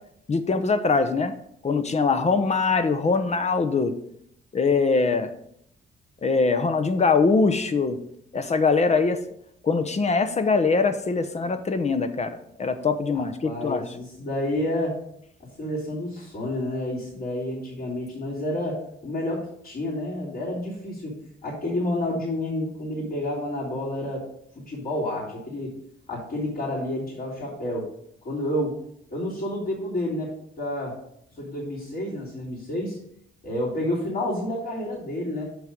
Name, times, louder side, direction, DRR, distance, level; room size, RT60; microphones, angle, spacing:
voice 1, 0.3-1.3 1.6-3.9 4.5-5.3 6.2-8.0 8.3-9.2 9.6-13.8, left 4 dB, 35° left, 9 dB, 0.8 m, -22 dB
voice 2, 13.1-15.0 15.6-21.2 21.4-24.2 24.7-25.8 26.1-27.9 28.2-28.8 29.1-31.0 31.4-33.0 33.4-35.4, left 1 dB, 50° left, -7 dB, 3.3 m, -29 dB
6.4 x 6.3 x 5.2 m, 0.71 s
cardioid pair, 90°, 20 cm